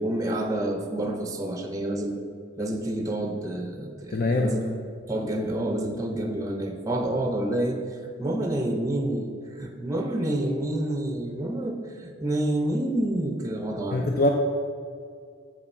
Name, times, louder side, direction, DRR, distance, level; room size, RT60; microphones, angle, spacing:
voice 1, 0.0-2.2 2.6-4.7 5.1-7.8 8.2-14.3, right 1 dB, 15° right, 4 dB, 0.6 m, -28 dB
voice 2, 4.1-4.5 13.9-14.3, left 2 dB, 45° left, 2 dB, 0.5 m, -23 dB
7.2 x 5.7 x 5.3 m, 2.3 s
head